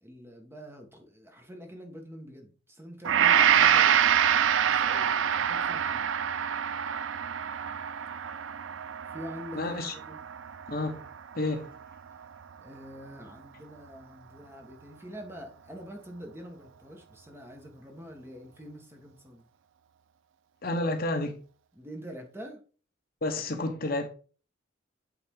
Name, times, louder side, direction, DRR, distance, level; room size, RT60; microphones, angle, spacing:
voice 1, 0.0-6.1 9.0-10.2 12.6-19.5 21.7-22.6, equal, 10° right, 1.2 m, -45 dB
Gong, 3.0-11.4 11.8-12.0, right 9 dB, 75° right, 0.4 m, -26 dB
voice 2, 9.5-9.9 10.7-11.0 11.4-11.7 20.6-21.4 23.2-24.1, left 2 dB, 50° left, 1.0 m, -30 dB
8.4 x 3.8 x 3.6 m
head